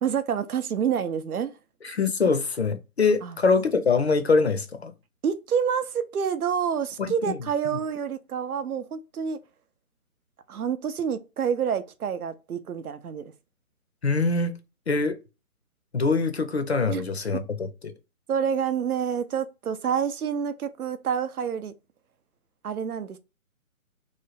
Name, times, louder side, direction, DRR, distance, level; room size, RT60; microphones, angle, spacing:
voice 1, 0.0-1.5 3.2-3.4 5.2-9.4 10.5-13.3 16.9-17.0 17.3-17.4 18.3-21.7 22.6-23.2, right 7 dB, 85° right, 0.7 m, -28 dB
voice 2, 1.8-4.9 7.0-7.3 7.7-7.8 14.0-14.5 14.9-15.2 15.9-17.9, left 4 dB, 50° left, 0.5 m, -24 dB
3.2 x 2.1 x 3.9 m
hypercardioid pair, 170°, 43 cm